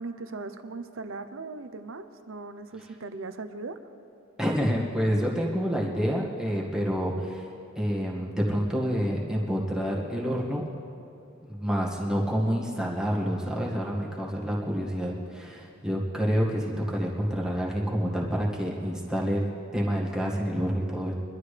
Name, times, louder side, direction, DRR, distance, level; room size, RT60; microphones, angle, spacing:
voice 1, 0.0-3.8, right 3 dB, 75° right, 10 dB, 0.8 m, -38 dB
voice 2, 4.4-7.5 7.8-10.6 11.5-21.1, equal, 5° right, -4 dB, 1.8 m, -28 dB
23.5 x 12.5 x 3.4 m, 2.7 s
head